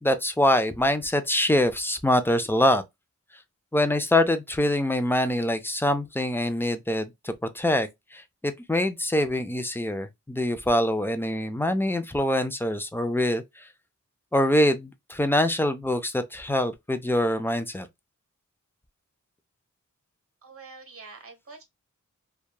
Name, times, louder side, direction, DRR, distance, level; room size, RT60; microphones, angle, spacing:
voice 1, 0.0-2.8 3.7-13.7 14.3-17.9, left 1 dB, 5° left, 0.4 m, -24 dB
voice 2, 20.4-21.6, right 4 dB, 45° right, 1.0 m, -45 dB
2.8 x 2.3 x 2.2 m
wide cardioid pair, 80°, 31 cm